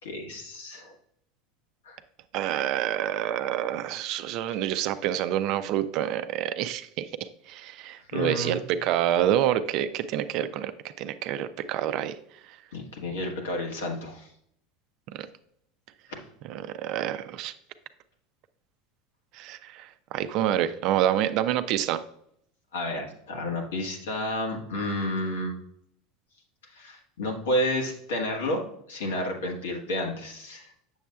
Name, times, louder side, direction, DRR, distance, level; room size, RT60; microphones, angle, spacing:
voice 1, 0.0-0.9 1.8-2.0 8.1-8.6 12.7-14.3 22.7-25.6 26.7-28.6 28.9-30.7, left 1 dB, 80° left, 1 dB, 1.4 m, -31 dB
voice 2, 2.3-10.7 11.0-12.2 12.5-12.6 15.1-15.3 16.5-17.5 19.3-22.0, right 11 dB, 60° right, 11 dB, 0.5 m, -27 dB
7.1 x 7.0 x 2.3 m, 0.72 s
hypercardioid pair, 90°, 0 cm